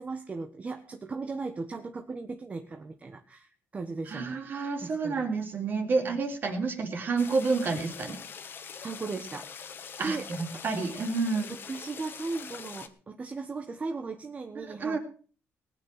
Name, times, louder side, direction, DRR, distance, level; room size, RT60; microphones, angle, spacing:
voice 1, 0.0-5.2 6.0-6.1 8.8-9.5 10.0-10.3 10.5-10.6 11.5-15.0, right 3 dB, 25° right, 6 dB, 1.3 m, -37 dB
voice 2, 4.1-8.2 10.0-11.5 14.6-15.0, right 4 dB, 45° right, 4 dB, 3.5 m, -29 dB
sound 1, 7.2-12.9, left 7 dB, 45° left, 1.6 m, -43 dB
19.0 x 9.3 x 5.8 m, 0.41 s
cardioid pair, 125°, 5 cm